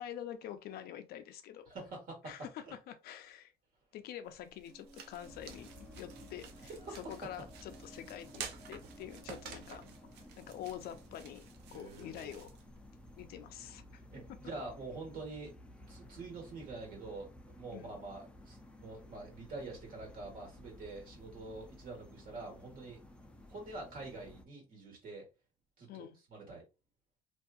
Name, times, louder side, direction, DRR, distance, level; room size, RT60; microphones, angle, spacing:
voice 1, 0.0-1.7 2.2-3.5 3.9-9.8 10.4-12.5 13.2-14.0 17.7-18.0 25.9-26.2, left 10 dB, 70° left, 0.4 m, -46 dB
voice 2, 1.7-2.3 2.6-2.7 6.8-7.0 11.7-12.4 13.9-15.6 15.9-23.0 23.5-25.3 25.8-26.6, right 3 dB, 55° right, 1.4 m, -46 dB
sound 1, 4.3-13.3, right 7 dB, 85° right, 0.5 m, -51 dB
sound 2, 4.7-12.8, right 1 dB, 15° right, 0.8 m, -59 dB
raw weirdbirdnoise, 5.2-24.4, left 1 dB, 5° left, 0.3 m, -55 dB
2.6 x 2.3 x 2.3 m
cardioid pair, 110°, 17 cm